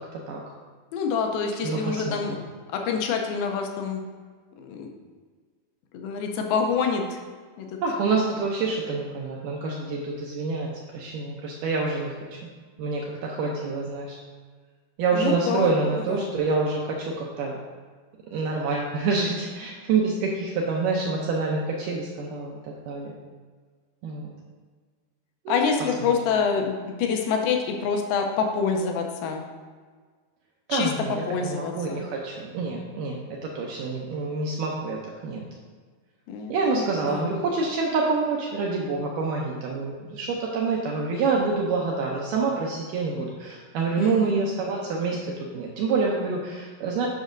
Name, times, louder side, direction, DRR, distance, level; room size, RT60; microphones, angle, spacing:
voice 1, 0.9-2.4 2.7-4.0 4.6-4.9 5.9-7.2 7.6-7.8 15.1-15.7 16.1-16.3 25.5-29.4 30.7-30.9 31.3-32.1 36.3-37.2 44.0-44.3, left 5 dB, 75° left, 3 dB, 2.3 m, -26 dB
voice 2, 1.6-2.4 7.8-12.1 12.8-14.2 15.0-17.6 18.3-23.1 24.0-24.3 25.5-25.6 30.7-35.4 36.5-47.1, right 4 dB, 85° right, -2 dB, 1.9 m, -27 dB
9.1 x 6.2 x 2.6 m, 1.5 s
omnidirectional pair, 4.6 m